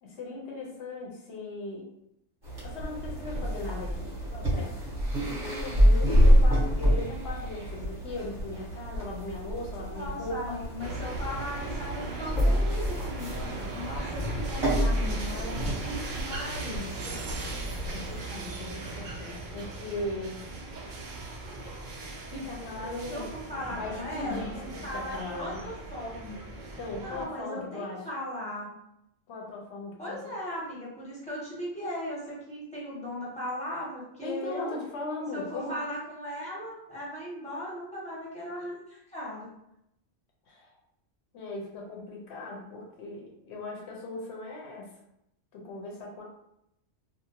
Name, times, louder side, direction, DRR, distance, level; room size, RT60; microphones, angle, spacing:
voice 1, 0.0-1.9 2.6-4.8 5.3-10.6 17.1-17.5 17.9-20.4 22.3-25.7 26.8-28.0 29.3-30.2 34.2-35.8 40.5-40.7 41.3-44.9 45.5-46.2, left 2 dB, 65° left, -1 dB, 0.9 m, -38 dB
sound 1, 2.4-18.2, equal, 25° right, 0.8 m, -27 dB
voice 2, 5.8-6.3 9.9-17.1 23.1-26.4 27.0-28.7 30.0-34.8 35.3-39.5, left 1 dB, 5° left, -8 dB, 0.8 m, -38 dB
sound 2, 10.8-27.2, right 2 dB, 60° right, 0.5 m, -39 dB
2.6 x 2.1 x 2.8 m, 0.80 s
omnidirectional pair, 1.3 m